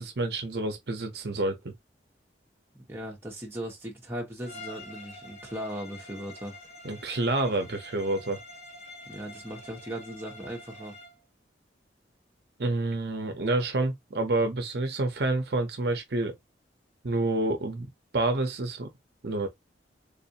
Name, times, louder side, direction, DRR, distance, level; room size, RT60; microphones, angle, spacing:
voice 1, 0.0-1.7 6.8-8.4 12.6-16.4 17.0-17.9 18.1-18.9 19.2-19.5, right 2 dB, 60° right, 0.7 m, -28 dB
voice 2, 2.7-6.6 9.1-10.9, equal, 15° right, 1.1 m, -38 dB
Bowed string instrument, 4.4-11.2, left 1 dB, 35° left, 0.9 m, -47 dB
3.6 x 2.6 x 2.7 m
head